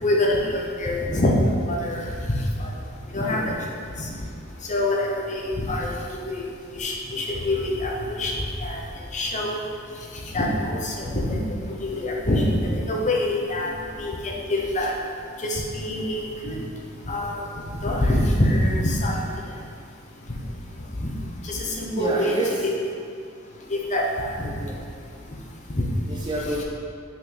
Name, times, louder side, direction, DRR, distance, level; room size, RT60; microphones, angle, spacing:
voice 1, 0.0-1.3 1.7-2.7 3.1-3.5 4.0-4.1 4.7-6.5 6.7-8.8 9.1-9.6 10.3-11.4 11.8-12.4 12.7-13.7 14.0-14.9 15.4-16.6 17.1-17.4 17.8-19.2 21.0-21.1 21.4-22.7 23.7-24.3 25.7-25.8 26.5-26.6, left 1 dB, 35° left, -1 dB, 0.8 m, -25 dB
voice 2, 22.0-22.5 24.4-24.8 26.1-26.6, right 2 dB, 20° right, -2 dB, 0.4 m, -29 dB
5.9 x 5.7 x 3.4 m, 2.3 s
head